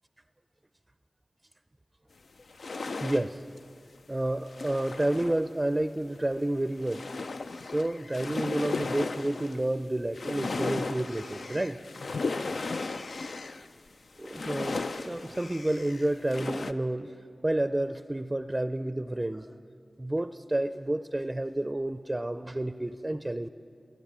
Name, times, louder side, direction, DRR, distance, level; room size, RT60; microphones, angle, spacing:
sound 1, 2.4-3.6 4.1-5.4 5.7-5.8 6.3-6.4 6.6-9.8 10.1-13.7 14.2-16.7, left 3 dB, 85° left, 0.4 m, -35 dB
voice 1, 3.0-3.4 4.1-7.0 7.6-11.8 12.6-12.9 14.2-17.1 17.4-19.5 20.0-23.5, right 1 dB, 25° right, 11 dB, 0.4 m, -30 dB
21.5 x 9.1 x 7.4 m, 2.4 s
cardioid pair, 45°, 0 cm